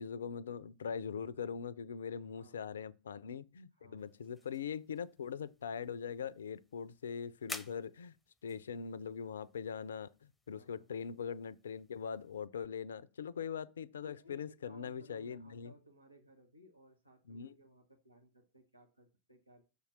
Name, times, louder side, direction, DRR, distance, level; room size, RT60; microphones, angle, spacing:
voice 1, 0.0-8.1 8.4-15.7 17.3-17.6, left 7 dB, 65° left, 0.4 m, -42 dB
voice 2, 2.1-2.6 3.8-4.1 10.5-10.9 14.0-19.6, equal, 85° right, 1.0 m, -60 dB
sound 1, 4.0-12.5, left 2 dB, 5° left, 0.7 m, -54 dB
6.9 x 4.4 x 6.5 m
figure-of-eight pair, 90°, 0 cm